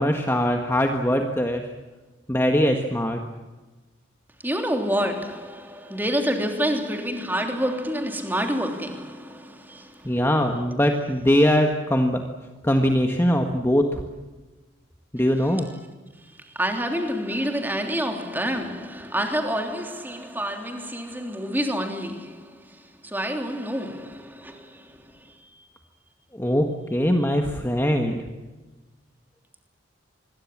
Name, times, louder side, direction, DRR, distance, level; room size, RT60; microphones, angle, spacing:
voice 1, 0.0-1.7 2.3-3.2 10.0-12.2 12.6-14.0 15.1-15.7 26.3-28.2, equal, 10° left, 1.5 m, -21 dB
voice 2, 4.4-10.2 16.4-25.7, equal, 10° right, 3.3 m, -28 dB
26.0 x 22.0 x 7.4 m
head